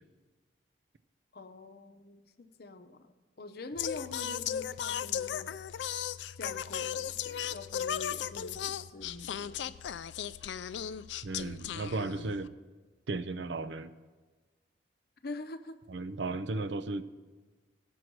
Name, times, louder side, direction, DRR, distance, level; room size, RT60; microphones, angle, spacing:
voice 1, 1.3-5.6 6.4-9.8 15.2-15.8, left 3 dB, 60° left, 8 dB, 0.7 m, -45 dB
Singing, 3.8-12.5, left 9 dB, 80° left, 0.4 m, -36 dB
voice 2, 11.2-12.5 13.1-13.9 15.9-17.0, right 3 dB, 80° right, 12 dB, 0.5 m, -35 dB
18.0 x 6.2 x 4.6 m, 1.3 s
head